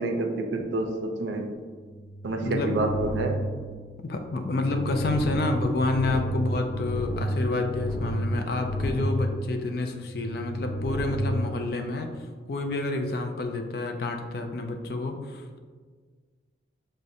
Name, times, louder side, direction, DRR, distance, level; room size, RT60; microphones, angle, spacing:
voice 1, 0.0-1.5 2.2-3.4, right 2 dB, 85° right, 5 dB, 0.4 m, -28 dB
sound 1, 1.7-12.3, equal, 10° right, 0.5 m, -32 dB
voice 2, 2.4-2.8 4.0-12.1 12.5-15.6, left 2 dB, 60° left, 5 dB, 0.4 m, -29 dB
6.0 x 2.2 x 2.6 m, 1.5 s
head